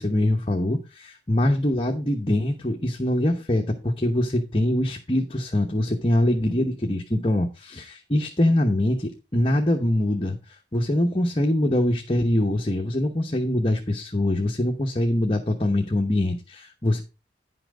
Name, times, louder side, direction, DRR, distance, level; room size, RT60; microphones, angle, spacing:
voice 1, 0.0-17.0, left 1 dB, 30° left, 2 dB, 1.0 m, -23 dB
10.0 x 5.9 x 5.0 m, 0.29 s
head